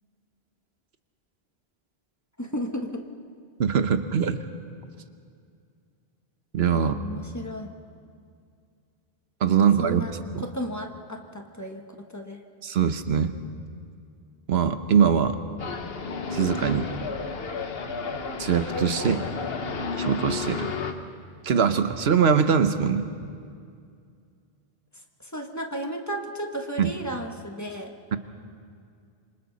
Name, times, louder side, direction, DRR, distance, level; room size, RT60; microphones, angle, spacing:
voice 1, 2.4-3.0 6.7-7.7 9.6-10.1 10.4-12.4 25.3-27.9, equal, 15° left, 2 dB, 1.4 m, -34 dB
voice 2, 3.6-4.4 6.5-7.0 9.4-10.5 12.6-13.3 14.5-15.4 16.3-16.9 18.4-19.2 19.9-20.7 21.4-23.1 26.8-26.9, right 7 dB, 85° right, 9 dB, 1.2 m, -22 dB
sound 1, 15.6-20.9, left 4 dB, 70° left, 1.3 m, -32 dB
27.0 x 25.5 x 4.1 m, 2.3 s
omnidirectional pair, 1.0 m